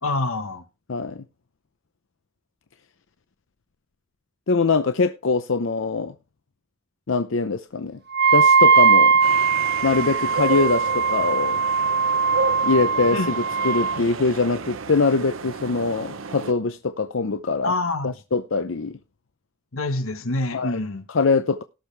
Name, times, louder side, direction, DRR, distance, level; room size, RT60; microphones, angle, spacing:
voice 1, 0.0-0.6 13.1-13.3 13.9-14.1 17.6-18.2 19.7-21.1, left 2 dB, 90° left, 1.3 m, -26 dB
voice 2, 0.9-1.2 4.5-6.1 7.1-8.0 8.3-9.2 9.8-11.6 12.6-13.3 13.6-17.7 18.3-19.0 20.5-20.8 21.1-21.6, left 4 dB, 70° left, 0.6 m, -23 dB
Wind instrument woodwind instrument, 8.1-14.0, right 5 dB, 50° right, 0.9 m, -19 dB
sound 1, 9.2-16.5, right 4 dB, 80° right, 0.9 m, -32 dB
18.0 x 6.6 x 3.3 m
head